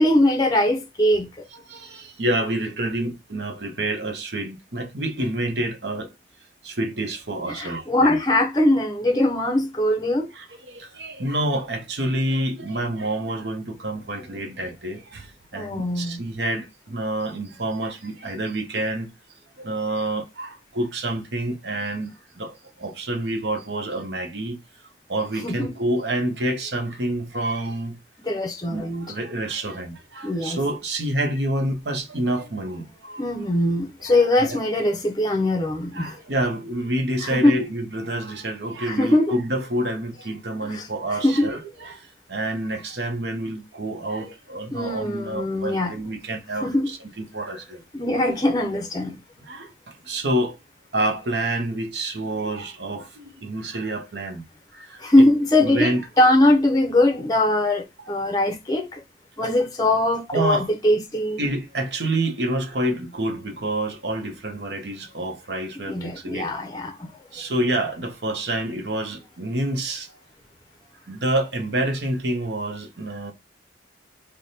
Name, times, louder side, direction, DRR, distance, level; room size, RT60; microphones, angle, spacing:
voice 1, 0.0-1.4 7.5-10.3 15.5-16.2 25.4-25.7 28.2-29.1 30.2-30.6 33.2-36.2 37.2-37.7 38.9-39.3 40.6-40.9 41.2-41.5 44.7-45.9 46.6-46.9 47.9-49.2 55.0-59.0 59.4-61.4 65.9-67.1, left 1 dB, 20° left, 0.5 m, -21 dB
voice 2, 1.7-6.1 6.6-8.2 10.3-15.3 15.5-19.1 19.6-22.1 22.4-22.5 22.8-24.6 25.1-28.0 28.7-33.2 34.0-34.6 35.9-42.0 42.3-47.8 49.5-49.7 50.1-50.6 50.9-54.4 54.8-55.2 55.6-56.0 60.3-60.7 61.4-66.5 67.3-70.1 71.1-73.3, right 1 dB, 70° right, 0.9 m, -28 dB
3.4 x 2.2 x 4.1 m
head